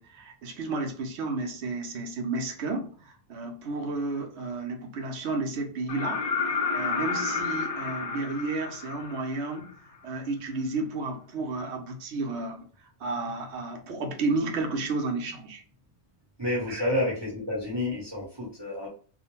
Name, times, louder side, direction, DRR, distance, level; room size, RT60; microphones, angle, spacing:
voice 1, 0.0-9.7 10.0-12.7 13.0-15.6 16.7-16.9, right 3 dB, 70° right, 3 dB, 0.9 m, -32 dB
sound 1, 5.9-9.7 11.6-11.7, left 5 dB, 75° left, 0.3 m, -30 dB
voice 2, 16.4-18.9, left 1 dB, 25° right, -5 dB, 0.7 m, -29 dB
2.4 x 2.1 x 2.9 m, 0.42 s
omnidirectional pair, 1.2 m